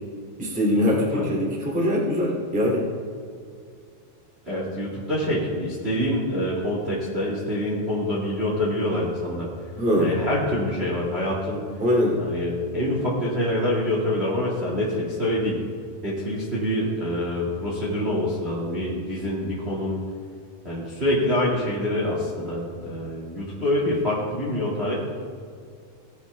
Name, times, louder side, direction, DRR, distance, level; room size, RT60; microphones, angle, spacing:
voice 1, 0.4-2.8 9.8-10.1 11.8-12.2, equal, 5° right, -2 dB, 0.8 m, -22 dB
voice 2, 4.5-9.5 10.0-11.6 12.2-15.6 16.0-20.0 20.6-24.9, left 1 dB, 55° right, -4 dB, 0.7 m, -26 dB
18.0 x 9.5 x 3.4 m, 2.3 s
omnidirectional pair, 4.8 m